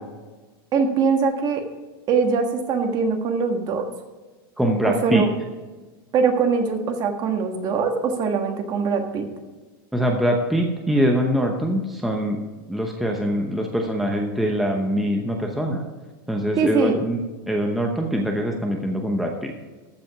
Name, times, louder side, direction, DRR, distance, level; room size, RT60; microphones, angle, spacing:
voice 1, 0.7-1.6 2.1-3.9 4.8-5.3 6.1-9.2 16.6-16.9, right 5 dB, 35° right, 5 dB, 1.5 m, -22 dB
voice 2, 4.6-5.2 9.9-12.4 12.7-15.8 16.3-17.2 17.5-19.5, equal, ahead, 1 dB, 0.9 m, -23 dB
14.0 x 5.1 x 6.0 m, 1.2 s
supercardioid pair, 145°, 12 cm